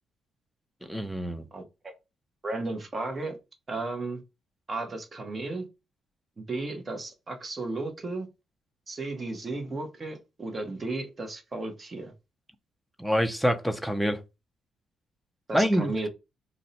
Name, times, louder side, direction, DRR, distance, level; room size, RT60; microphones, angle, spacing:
voice 1, 0.8-1.4 13.0-14.2 15.5-16.1, equal, ahead, 0.5 m, -26 dB
voice 2, 1.5-1.9 2.4-3.4 3.7-4.2 4.7-5.7 6.4-8.3 8.9-12.1 15.5-16.1, right 2 dB, 30° right, 0.9 m, -34 dB
2.6 x 2.1 x 4.0 m
cardioid pair, 90°, 0 cm